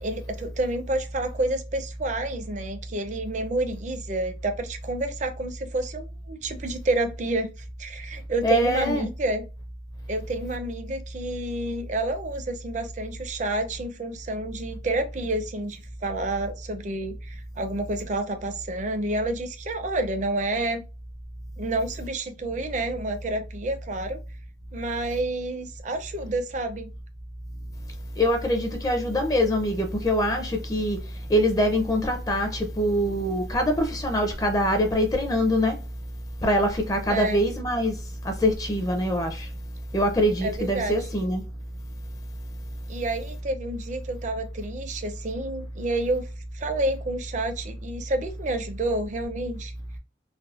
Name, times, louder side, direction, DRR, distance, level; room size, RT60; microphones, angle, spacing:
voice 1, 0.0-7.5 7.8-9.5 10.1-20.8 21.6-24.2 24.7-26.9 37.1-37.4 40.4-41.1 42.9-46.3 46.5-49.7, right 2 dB, 40° right, 0.5 m, -29 dB
voice 2, 8.4-9.1 28.2-31.0 31.3-35.8 36.4-38.0 38.2-39.5 39.9-41.4, equal, 20° left, 0.5 m, -24 dB
3.4 x 2.0 x 2.3 m
head